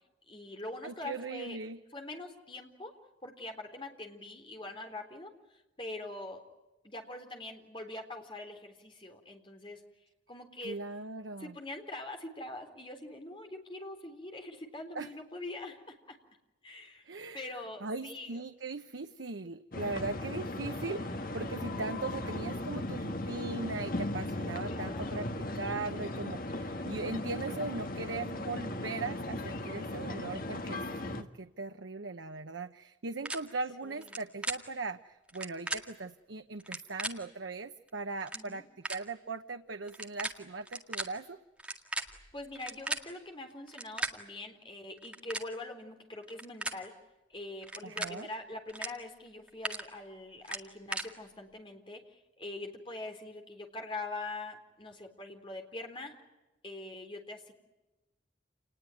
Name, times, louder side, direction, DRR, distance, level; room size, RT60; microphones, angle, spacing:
voice 1, 0.3-1.6 1.9-2.9 3.2-6.4 6.8-9.8 10.3-10.8 11.4-16.2 16.6-17.0 17.3-18.4 24.7-25.3 33.8-34.2 38.3-38.6 42.0-46.9 47.3-56.2 56.6-57.5, left 2 dB, 25° left, 4 dB, 3.8 m, -43 dB
voice 2, 0.8-1.8 10.6-11.5 14.9-15.1 17.0-17.5 17.8-41.4 47.8-48.3, right 3 dB, 90° right, 8 dB, 0.9 m, -39 dB
sound 1, 19.7-31.2, left 1 dB, 50° left, 1.5 m, -37 dB
sound 2, 33.2-33.4 34.0-34.2 34.4-34.6 35.3-35.8 36.6-37.1 37.9-38.0 38.2-38.4 38.8-39.0 39.9-40.3 40.6-41.0 41.6-43.0 43.7-44.1 45.0-45.5 46.2-46.8 47.6-48.1 48.7-48.9 49.3-49.8 50.4-51.1, right 2 dB, 5° right, 1.9 m, -36 dB
28.5 x 20.0 x 9.2 m, 1.1 s
head